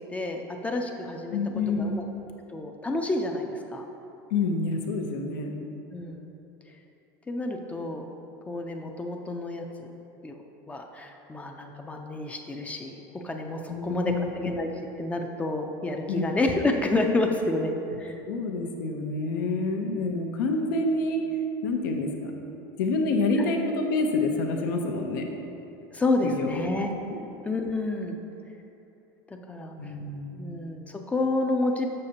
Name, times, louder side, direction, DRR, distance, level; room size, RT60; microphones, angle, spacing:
voice 1, 0.0-1.4 1.8-2.0 2.5-3.9 5.9-6.3 7.3-8.1 8.5-9.9 10.2-14.7 15.0-18.2 25.9-26.9 27.4-28.2 29.5-29.9 30.3-31.9, left 2 dB, 15° left, 3 dB, 0.4 m, -29 dB
voice 2, 1.3-2.0 4.3-5.6 13.7-14.3 16.1-16.3 18.3-21.2 21.6-22.3 22.8-25.3 26.2-26.5 27.1-27.2 29.8-30.4, left 3 dB, 85° left, 3 dB, 0.7 m, -27 dB
6.5 x 6.3 x 2.8 m, 2.9 s
supercardioid pair, 130°, 10 cm